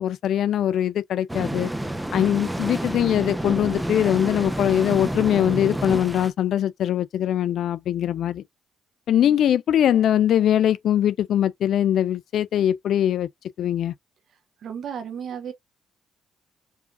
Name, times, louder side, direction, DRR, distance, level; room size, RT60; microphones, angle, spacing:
voice 1, 0.0-1.7 2.1-8.4 9.1-13.3 13.6-13.9, left 10 dB, 70° left, 0.4 m, -22 dB
sound 1, 1.3-6.3, right 1 dB, 5° right, 0.5 m, -29 dB
voice 2, 14.6-15.5, right 8 dB, 60° right, 0.7 m, -33 dB
4.8 x 2.5 x 2.4 m
cardioid pair, 90°, 0 cm